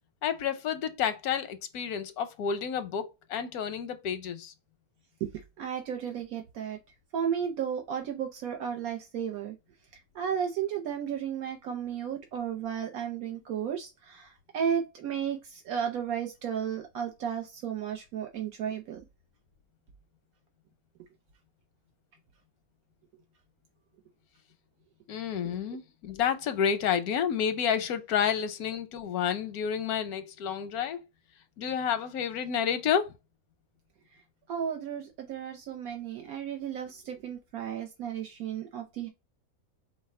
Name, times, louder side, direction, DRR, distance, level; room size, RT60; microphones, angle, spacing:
voice 1, 0.2-4.5 25.1-31.0 31.6-33.1, left 8 dB, 90° left, 1.2 m, -30 dB
voice 2, 5.6-6.8 7.1-9.5 10.1-19.0 34.5-39.1, right 8 dB, 80° right, 1.1 m, -33 dB
4.8 x 2.1 x 4.1 m
omnidirectional pair, 1.5 m